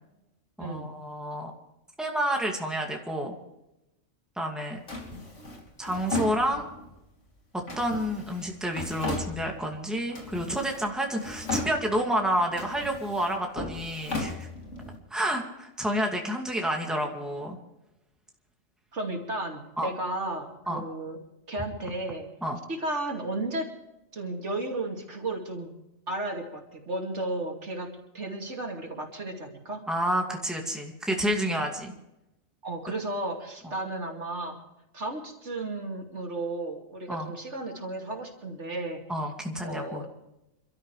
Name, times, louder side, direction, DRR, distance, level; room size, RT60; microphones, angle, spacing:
voice 1, 0.6-1.5 2.0-3.4 4.4-4.8 5.8-6.7 7.5-14.5 15.1-17.6 19.8-19.9 20.7-20.8 22.4-22.6 29.9-31.9 37.1-37.3 39.1-40.0, equal, ahead, 1 dB, 2.2 m, -29 dB
Drawer open or close, 4.9-7.0 7.7-9.8 10.1-10.9 11.2-12.1 12.5-15.0, left 2 dB, 75° left, 3.4 m, -36 dB
voice 2, 18.9-21.2 21.5-22.3 22.7-23.7 24.1-25.7 26.1-27.9 28.1-29.8 32.6-34.6 34.9-39.0 39.6-40.1, right 2 dB, 70° right, 1 dB, 2.9 m, -34 dB
28.5 x 13.0 x 3.3 m, 0.91 s
omnidirectional pair, 1.3 m